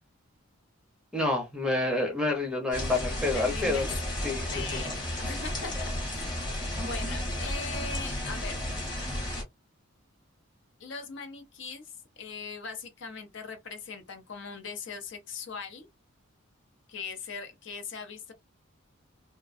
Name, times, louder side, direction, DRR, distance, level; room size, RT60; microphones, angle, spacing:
voice 1, 1.1-4.0 4.2-4.8, left 2 dB, 5° right, 0.6 m, -28 dB
sound 1, 2.7-9.4, left 1 dB, 20° left, 1.0 m, -33 dB
voice 2, 3.3-3.9 4.5-6.4 6.8-8.6 10.8-15.9 16.9-18.3, left 5 dB, 60° left, 0.6 m, -40 dB
2.3 x 2.1 x 2.4 m
head